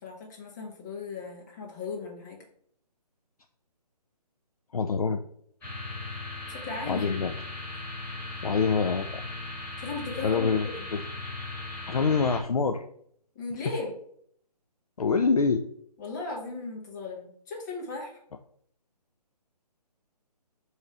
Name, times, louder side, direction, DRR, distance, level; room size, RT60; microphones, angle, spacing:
voice 1, 0.0-2.4 6.5-7.2 9.8-10.5 10.7-10.9 13.3-13.9 16.0-18.1, left 4 dB, 25° left, -1 dB, 1.5 m, -36 dB
voice 2, 4.7-5.2 6.9-7.3 8.4-9.2 10.2-10.7 10.9-11.0 11.9-12.8 15.0-15.6, left 5 dB, 60° left, 6 dB, 0.5 m, -25 dB
sound 1, 5.6-12.4, left 2 dB, 10° left, 1.8 m, -38 dB
6.8 x 3.3 x 4.8 m, 0.66 s
figure-of-eight pair, 145°, 21 cm